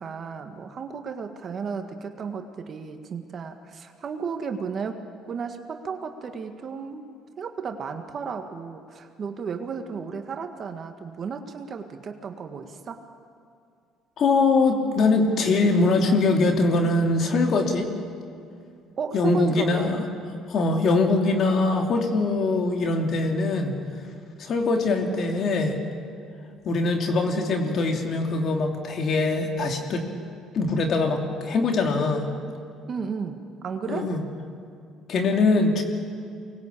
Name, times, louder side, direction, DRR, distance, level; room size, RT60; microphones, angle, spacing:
voice 1, 0.0-7.1 7.4-13.0 19.0-19.9 32.9-34.1, right 6 dB, 45° right, 6 dB, 1.8 m, -34 dB
voice 2, 14.2-17.9 19.1-20.1 20.5-23.7 24.4-25.8 26.6-30.0 30.5-32.3 33.9-34.2 35.1-35.8, left 3 dB, 55° left, 2 dB, 3.0 m, -22 dB
24.5 x 20.5 x 8.6 m, 2.3 s
supercardioid pair, 90°, 0 cm